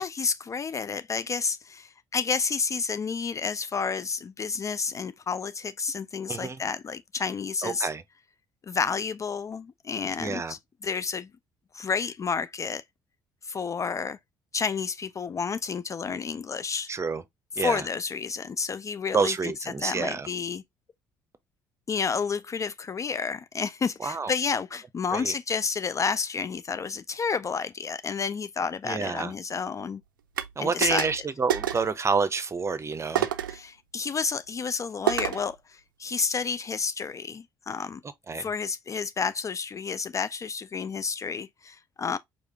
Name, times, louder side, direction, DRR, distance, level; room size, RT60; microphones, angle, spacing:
voice 1, 0.0-7.9 8.6-11.3 11.7-12.8 13.4-14.2 14.5-16.9 17.6-20.6 21.9-30.0 30.6-31.1 33.5-38.0 38.4-42.2, left 5 dB, 30° left, 0.3 m, -30 dB
voice 2, 6.3-6.6 7.6-8.0 10.2-10.5 16.9-17.2 17.6-17.8 19.1-20.3 24.0-24.3 25.1-25.3 28.8-29.3 30.6-33.3 38.3-38.5, right 4 dB, 25° right, 0.7 m, -28 dB
sound 1, 30.4-30.5 30.8-31.2 31.5-31.9 33.2-33.6 35.1-35.5, right 10 dB, 85° right, 0.4 m, -28 dB
4.9 x 2.4 x 3.3 m
figure-of-eight pair, 50°, 11 cm